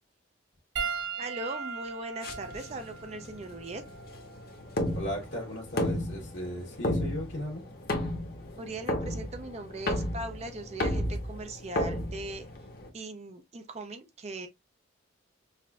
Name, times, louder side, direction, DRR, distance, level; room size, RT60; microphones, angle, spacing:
Piano, 0.8-5.4 6.4-6.5 8.5-8.6, right 5 dB, 70° right, 0.9 m, -39 dB
voice 1, 1.2-3.8 8.6-12.5 12.9-14.5, right 2 dB, 35° right, 0.4 m, -39 dB
sound 1, 2.2-12.9, left 1 dB, 50° left, 0.9 m, -33 dB
voice 2, 4.9-7.6, equal, 70° left, 1.3 m, -36 dB
5.5 x 2.5 x 2.2 m
head